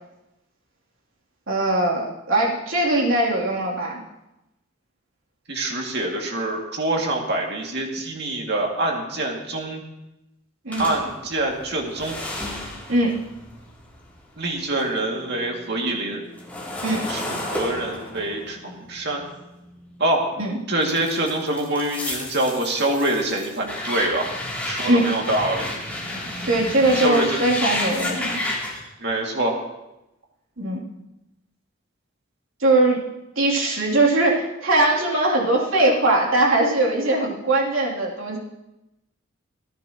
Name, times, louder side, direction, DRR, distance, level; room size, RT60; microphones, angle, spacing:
voice 1, 1.5-4.0 10.6-10.9 12.9-13.1 16.8-17.0 20.4-20.6 24.8-25.1 26.4-28.4 30.6-30.8 32.6-33.0 33.3-38.4, right 2 dB, 75° right, -3 dB, 3.2 m, -20 dB
voice 2, 5.5-9.8 10.8-12.2 14.4-16.2 17.1-19.2 20.0-20.2 20.7-24.3 24.6-25.7 26.9-27.4 29.0-29.6, right 1 dB, 55° right, 0 dB, 2.4 m, -25 dB
sound 1, 10.7-15.0 15.3-20.2 20.8-28.8, left 1 dB, 10° left, 3.0 m, -32 dB
27.0 x 10.5 x 3.1 m, 0.94 s
head